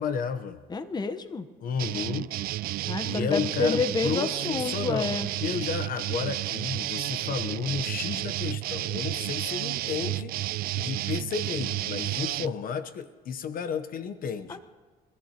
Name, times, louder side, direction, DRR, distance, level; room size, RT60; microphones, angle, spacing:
voice 1, 0.0-0.6 1.6-2.3 3.0-5.1 5.4-10.3 10.8-14.6, left 6 dB, 60° left, 10 dB, 0.9 m, -32 dB
voice 2, 0.7-1.5 2.9-5.3 14.5-14.6, left 4 dB, 25° left, 11 dB, 1.0 m, -29 dB
sound 1, 1.8-12.5, right 16 dB, 65° right, 0.4 m, -31 dB
28.5 x 14.0 x 3.0 m, 1.3 s
supercardioid pair, 80°, 17 cm